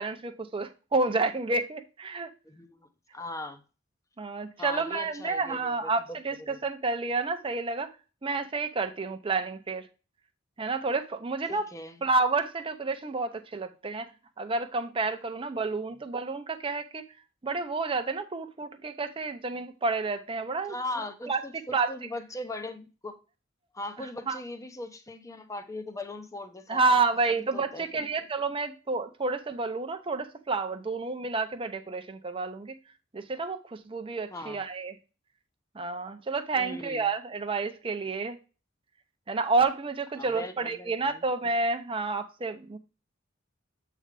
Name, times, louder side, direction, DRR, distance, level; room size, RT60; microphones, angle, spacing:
voice 1, 0.0-2.3 4.2-7.9 8.2-9.9 10.6-11.6 12.0-14.1 14.4-17.0 17.4-20.7 21.3-21.4 21.7-21.9 24.3-24.4 26.7-32.8 33.1-34.9 35.7-38.4 39.3-42.8, right 3 dB, 25° right, 0.6 m, -30 dB
voice 2, 2.4-3.6 4.6-6.2 6.5-6.6 11.5-12.0 20.7-23.2 23.7-26.8 27.5-28.1 34.3-34.6 36.6-37.0 40.2-41.2, left 2 dB, 15° left, 0.7 m, -39 dB
7.8 x 3.3 x 5.0 m
head